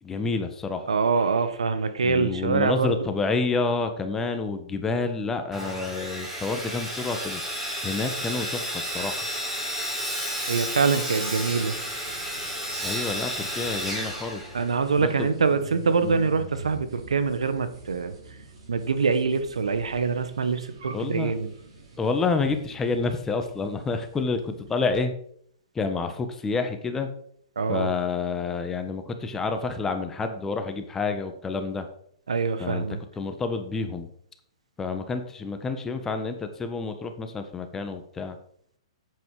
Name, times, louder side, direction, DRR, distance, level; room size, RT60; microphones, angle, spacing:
voice 1, 0.0-0.9 2.0-7.4 7.8-9.2 12.8-14.5 15.0-15.3 16.0-16.3 20.9-21.3 22.0-25.1 25.7-27.1 27.7-31.9 32.6-32.8 33.1-34.1 34.8-38.3, left 4 dB, 15° left, 7 dB, 1.4 m, -29 dB
voice 2, 0.9-2.9 10.5-11.7 14.5-18.1 18.7-21.5 27.5-27.9 32.3-33.0, right 5 dB, 85° right, 10 dB, 1.4 m, -24 dB
Sawing, 5.5-15.0, equal, 10° right, 4.3 m, -32 dB
sound 1, 11.4-25.0, right 3 dB, 65° right, 5.0 m, -46 dB
10.5 x 8.4 x 5.0 m, 0.67 s
hypercardioid pair, 130°, 3 cm